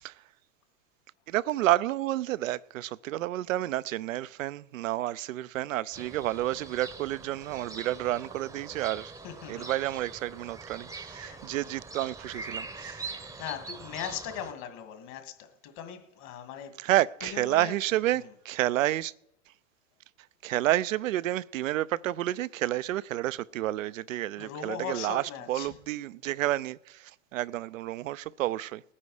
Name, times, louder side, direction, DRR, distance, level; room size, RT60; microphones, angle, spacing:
voice 1, 1.3-9.1 9.5-13.0 16.8-19.1 20.4-28.8, right 14 dB, 85° right, 0.6 m, -30 dB
sound 1, 5.9-14.5, right 4 dB, 10° right, 0.8 m, -43 dB
voice 2, 9.2-9.7 11.1-11.7 12.8-16.8 17.2-17.7 18.1-18.3 24.4-25.7, left 9 dB, 50° left, 2.2 m, -40 dB
19.5 x 9.8 x 4.9 m
hypercardioid pair, 110°, 38 cm